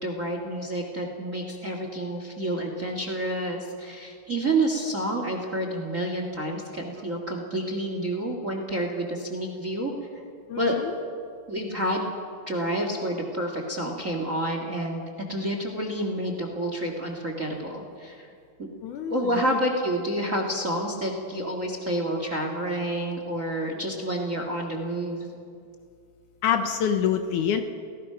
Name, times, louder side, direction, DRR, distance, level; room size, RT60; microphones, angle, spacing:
voice 1, 0.0-9.9 10.6-10.8 11.5-12.1 12.5-15.0 15.3-18.3 18.6-18.7 19.1-25.3, right 1 dB, 30° right, 3 dB, 1.6 m, -29 dB
voice 2, 10.5-10.9 18.8-19.6 26.4-27.6, left 8 dB, 70° left, 7 dB, 2.2 m, -26 dB
29.0 x 17.5 x 5.8 m, 2.3 s
omnidirectional pair, 4.1 m